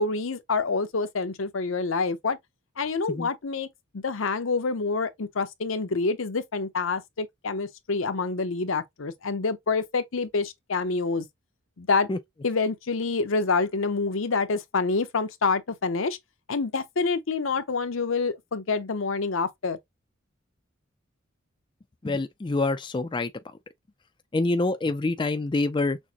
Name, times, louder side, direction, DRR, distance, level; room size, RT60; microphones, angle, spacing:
voice 1, 0.0-2.4 2.8-3.7 3.9-11.3 11.8-12.1 12.4-16.2 16.5-19.8, left 4 dB, 75° left, 0.7 m, -27 dB
voice 2, 22.0-23.3 24.3-26.0, left 2 dB, 25° left, 0.4 m, -26 dB
6.2 x 2.2 x 2.8 m
head